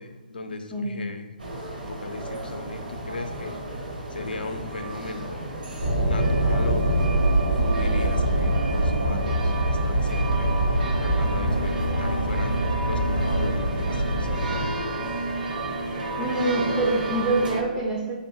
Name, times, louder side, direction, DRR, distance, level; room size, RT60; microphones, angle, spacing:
voice 1, 0.0-1.3 1.9-5.6 6.0-6.9 7.6-14.8, left 2 dB, 75° left, 6 dB, 0.4 m, -37 dB
voice 2, 0.7-1.0 16.2-18.1, right 2 dB, 15° right, -4 dB, 0.3 m, -25 dB
sound 1, 1.4-17.6, right 2 dB, 60° right, 0.7 m, -32 dB
sound 2, 5.8-14.7, right 1 dB, 80° right, 1.0 m, -24 dB
2.5 x 2.1 x 2.9 m, 1.2 s
figure-of-eight pair, 135°, 5 cm